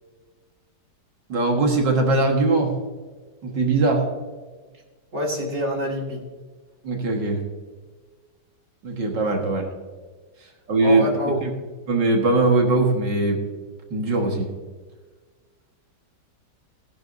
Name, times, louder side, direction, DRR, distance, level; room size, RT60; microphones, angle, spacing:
voice 1, 1.3-2.7 3.4-4.0 6.8-7.4 8.8-9.7 10.7-11.1 11.4-11.5 11.9-13.4 13.9-14.5, right 2 dB, 70° right, 2 dB, 2.2 m, -20 dB
voice 2, 5.1-6.2 10.8-11.5, equal, 40° right, -1 dB, 2.2 m, -26 dB
15.0 x 10.5 x 2.6 m, 1.4 s
omnidirectional pair, 2.0 m